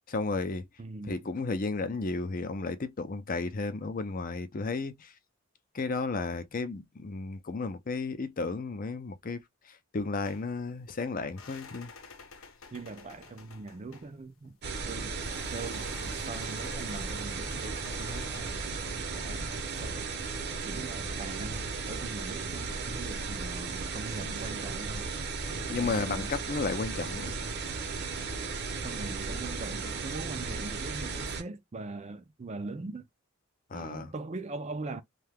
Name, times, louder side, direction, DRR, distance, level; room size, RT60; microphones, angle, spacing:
voice 1, 0.1-0.7 1.0-5.1 5.7-11.9 25.7-27.4 33.7-34.1, left 3 dB, 45° left, 0.6 m, -33 dB
voice 2, 0.8-1.2 12.7-14.6 14.9-18.5 19.1-20.1 20.6-25.1 25.7-26.3 28.8-33.1 33.7-35.0, right 3 dB, 35° right, 0.5 m, -41 dB
sound 1, 10.2-18.7, left 5 dB, 85° left, 0.8 m, -51 dB
sound 2, 14.6-31.4, right 4 dB, 55° right, 0.8 m, -35 dB
2.8 x 2.3 x 3.4 m
head